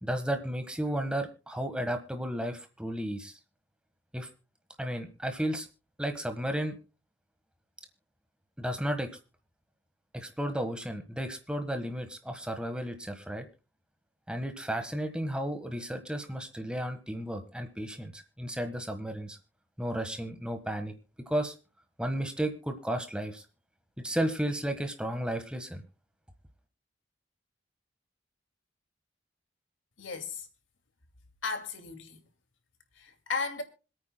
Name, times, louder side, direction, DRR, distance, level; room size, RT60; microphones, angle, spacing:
voice 1, 0.0-3.4 4.1-4.3 4.8-5.7 6.0-6.8 8.6-9.1 10.1-13.5 14.3-19.4 19.8-20.9 21.3-21.5 22.0-23.4 24.0-25.8, right 1 dB, 5° right, 1.3 m, -33 dB
voice 2, 30.0-30.5 31.4-32.2 33.0-33.6, left 4 dB, 85° left, 2.3 m, -35 dB
26.0 x 9.1 x 2.2 m
head